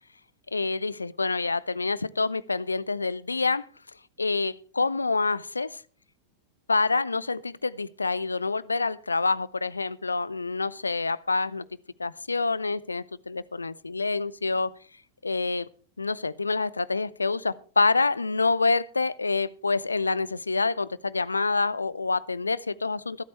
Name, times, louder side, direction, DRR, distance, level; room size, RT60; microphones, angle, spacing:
voice 1, 0.5-3.6 4.2-5.8 6.7-11.6 12.0-14.7 15.2-15.7 16.0-23.2, left 3 dB, 80° left, 21 dB, 0.4 m, -27 dB
23.5 x 8.4 x 3.2 m, 0.42 s
figure-of-eight pair, 90°, 0 cm